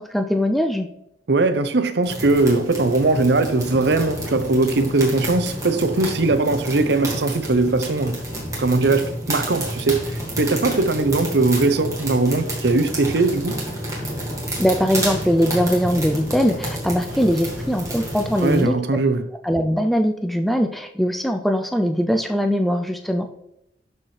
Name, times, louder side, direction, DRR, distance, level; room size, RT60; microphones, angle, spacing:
voice 1, 0.1-0.9 14.6-18.7 19.4-23.3, equal, ahead, 0.4 m, -21 dB
voice 2, 1.3-8.2 8.6-13.6 18.4-19.3, right 3 dB, 65° right, 0.6 m, -20 dB
sound 1, 2.0-18.6, right 1 dB, 20° right, 2.0 m, -30 dB
12.0 x 4.3 x 3.3 m
head